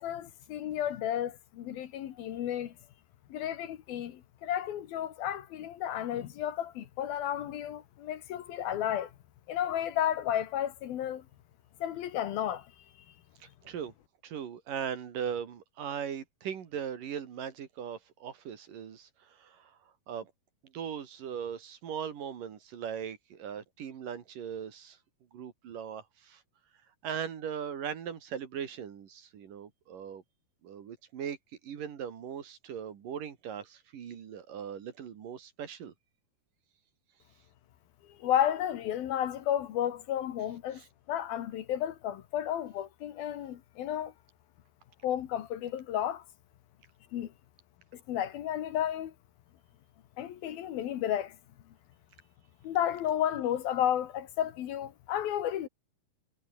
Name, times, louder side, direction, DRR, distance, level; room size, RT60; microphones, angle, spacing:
voice 1, 0.0-2.7 3.3-9.1 9.5-11.2 11.8-12.7 38.2-40.8 41.1-44.1 45.0-46.2 47.1-47.3 48.1-49.1 50.2-51.4 52.6-55.7, left 11 dB, 70° left, 3.2 m, -32 dB
voice 2, 13.4-13.9 14.2-19.7 20.1-20.3 20.7-25.0 25.3-26.4 27.0-30.2 30.6-31.4 31.6-35.9 40.8-40.9, right 8 dB, 60° right, 3.5 m, -39 dB
omnidirectional pair, 4.7 m